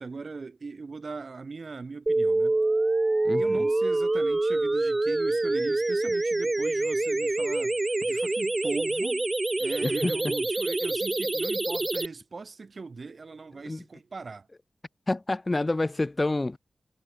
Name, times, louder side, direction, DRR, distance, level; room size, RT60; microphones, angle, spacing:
voice 1, 0.0-2.6 3.4-7.8 8.1-9.3 9.6-14.5, right 4 dB, 50° right, 5.2 m, -39 dB
sound 1, 2.1-12.1, right 2 dB, 25° right, 0.9 m, -26 dB
voice 2, 15.1-16.6, left 2 dB, 25° left, 0.3 m, -27 dB
wide cardioid pair, 95°, 0 cm